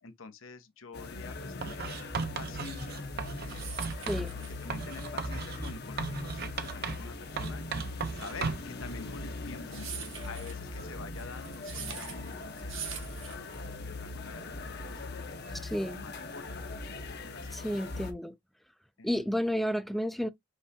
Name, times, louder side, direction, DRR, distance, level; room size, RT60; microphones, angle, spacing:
voice 1, 0.0-1.9 2.3-3.8 4.5-16.7 17.2-17.9 19.0-19.3, left 4 dB, 90° left, 0.9 m, -48 dB
sound 1, 0.9-18.1, left 3 dB, 55° left, 0.9 m, -40 dB
Writing, 1.6-4.3 4.7-7.1 7.4-8.8, right 4 dB, 50° right, 0.6 m, -36 dB
sound 2, 3.2-13.9, right 8 dB, 75° right, 1.3 m, -45 dB
voice 2, 4.1-4.4 15.6-16.0 17.5-18.4 19.0-20.3, equal, ahead, 0.4 m, -31 dB
5.3 x 3.3 x 2.7 m
head